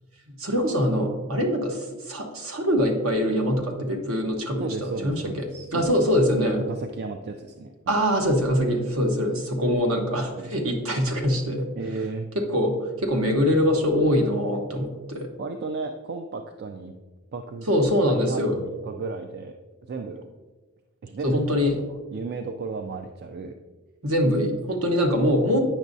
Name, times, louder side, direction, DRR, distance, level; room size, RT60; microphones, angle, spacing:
voice 1, 0.4-6.6 7.9-11.7 12.3-15.3 17.7-18.6 21.2-21.8 24.0-25.6, equal, 65° right, 3 dB, 1.1 m, -23 dB
voice 2, 4.6-6.1 6.7-8.0 10.3-10.6 11.8-12.3 15.4-16.9 17.3-17.7 18.0-19.6 19.9-20.3 21.0-23.5 25.5-25.6, right 3 dB, 50° right, 6 dB, 0.4 m, -34 dB
8.7 x 6.2 x 2.6 m, 1.2 s
head